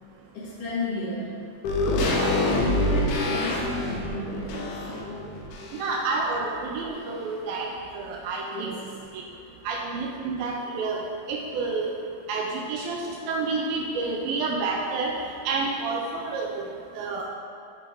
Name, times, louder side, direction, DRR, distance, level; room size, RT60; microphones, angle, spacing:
voice 1, 0.3-1.4 2.3-5.4 8.5-9.0, left 1 dB, 65° left, -7 dB, 2.6 m, -32 dB
sound 1, 1.6-6.1 6.4-6.5, left 2 dB, 85° left, 1.7 m, -26 dB
voice 2, 5.7-8.7 9.1-9.2 9.7-11.0 11.3-11.9 12.3-15.2 15.5-16.7 17.0-17.2, right 3 dB, 80° right, -1 dB, 2.2 m, -29 dB
6.9 x 3.8 x 4.6 m, 2.4 s
omnidirectional pair, 4.4 m